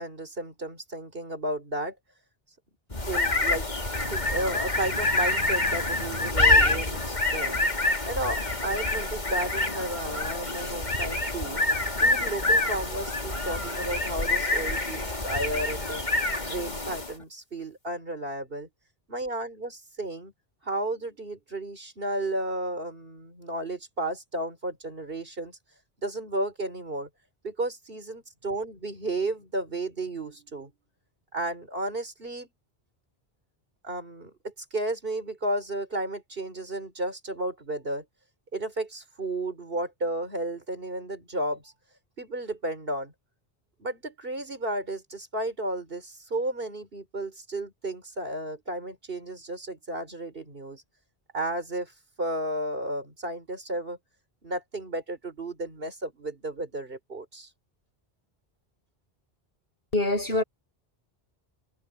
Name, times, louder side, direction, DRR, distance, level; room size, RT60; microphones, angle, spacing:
voice 1, 0.0-2.0 3.0-3.7 4.1-7.6 8.0-11.6 12.0-16.0 16.4-18.7 19.1-20.3 20.6-25.6 26.0-27.1 27.4-30.7 31.3-32.5 33.8-38.0 38.5-41.7 42.2-43.1 43.8-50.8 51.3-51.9 52.2-54.0 54.4-57.5, right 1 dB, 65° right, 4.3 m, -33 dB
sound 1, 2.9-17.2, left 2 dB, 45° left, 2.7 m, -26 dB
voice 2, 59.9-60.4, left 2 dB, 65° left, 7.0 m, -24 dB
omnidirectional pair, 1.0 m